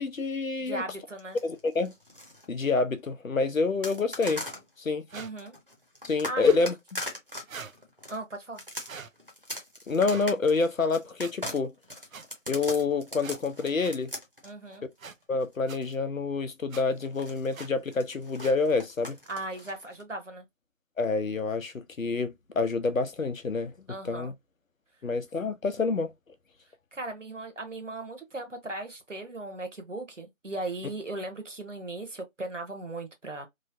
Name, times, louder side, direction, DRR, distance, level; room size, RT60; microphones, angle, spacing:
voice 1, 0.0-0.8 1.4-1.9 2.5-4.4 4.8-5.1 6.0-7.0 9.9-11.7 12.5-14.1 15.3-19.2 21.0-24.3 25.0-26.1, left 4 dB, 80° left, 0.7 m, -27 dB
voice 2, 0.6-1.4 5.1-5.5 6.3-6.4 8.1-8.6 14.4-14.9 19.3-20.4 23.9-24.3 26.9-33.5, right 2 dB, 65° right, 1.0 m, -37 dB
sound 1, 1.2-2.5 3.8-4.7 5.4-15.9 17.0-20.0, left 1 dB, 45° right, 0.7 m, -40 dB
sound 2, 4.2-4.4 5.1-5.3 6.3-6.7 7.5-7.8 8.8-9.1 10.0-10.3 11.2-11.3 12.1-12.2 13.2-13.4 13.8-13.9 15.0-15.1 15.7-15.8 16.7-16.8 17.5-17.7 18.4-18.6, right 5 dB, 85° right, 0.5 m, -42 dB
3.1 x 2.0 x 2.6 m
figure-of-eight pair, 180°, 39 cm